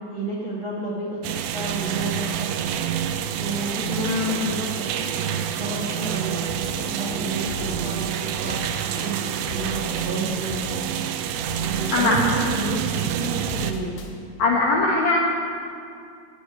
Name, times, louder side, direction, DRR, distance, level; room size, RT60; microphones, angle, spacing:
voice 1, 0.1-2.5 3.4-4.9 5.5-10.6 11.5-14.0, right 2 dB, 55° right, -4 dB, 1.3 m, -31 dB
sound 1, 1.2-13.7, right 9 dB, 90° right, 3.2 m, -28 dB
voice 2, 4.0-4.4 11.9-12.2 14.4-15.2, left 3 dB, 75° left, -2 dB, 1.7 m, -21 dB
sound 2, 6.5-6.7 7.0-8.0 8.5-8.7 9.0-10.1 10.5-10.7 11.0-12.0 12.5-12.7 13.0-14.1, left 1 dB, 60° left, 3.0 m, -38 dB
13.5 x 8.5 x 9.5 m, 2.4 s
omnidirectional pair, 5.4 m